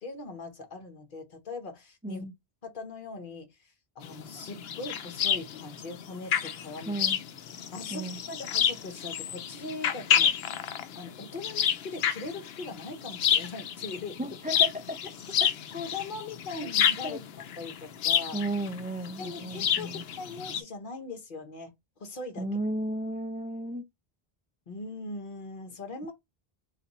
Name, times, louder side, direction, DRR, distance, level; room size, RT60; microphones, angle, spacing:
voice 1, 0.0-2.2 2.6-3.5 4.0-6.9 7.7-10.3 10.9-14.4 15.7-17.2 17.6-18.4 19.2-21.7 22.0-22.5 24.7-26.1, left 3 dB, 55° left, 1.1 m, -40 dB
voice 2, 2.0-2.3 6.9-7.2 7.9-8.2 14.2-15.0 15.4-15.5 16.6-16.7 17.0-17.2 18.3-20.0 22.4-23.8, right 1 dB, 15° right, 0.3 m, -34 dB
sound 1, 4.0-20.6, left 8 dB, 80° left, 0.8 m, -29 dB
3.3 x 2.6 x 4.0 m
omnidirectional pair, 1.0 m